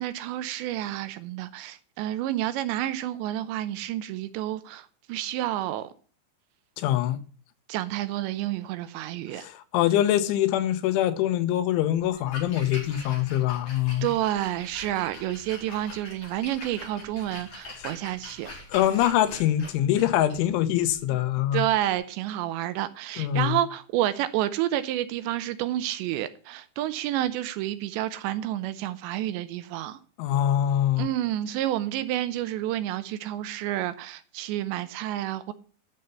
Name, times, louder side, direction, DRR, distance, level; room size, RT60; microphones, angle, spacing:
voice 1, 0.0-5.9 7.7-9.5 13.0-13.1 14.0-18.5 21.5-30.0 31.0-35.5, right 13 dB, 80° right, 2.8 m, -29 dB
voice 2, 6.8-7.2 9.3-14.1 18.7-21.6 23.2-23.6 30.2-31.1, left 12 dB, 85° left, 3.4 m, -24 dB
Splash splatter, 12.0-21.9, left 2 dB, 35° left, 5.6 m, -44 dB
11.0 x 6.7 x 6.9 m
omnidirectional pair, 5.4 m